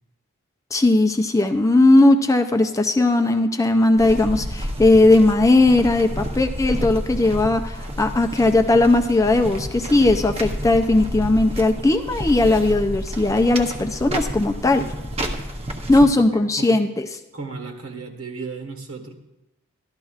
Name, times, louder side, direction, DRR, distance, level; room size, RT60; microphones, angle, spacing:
voice 1, 0.7-14.9 15.9-17.1, left 2 dB, 15° left, 6 dB, 0.4 m, -18 dB
sound 1, 4.0-16.0, equal, 30° right, 0.7 m, -30 dB
voice 2, 15.9-16.8 17.3-19.1, right 4 dB, 75° right, 3 dB, 1.5 m, -35 dB
14.0 x 12.0 x 2.4 m, 1.0 s
head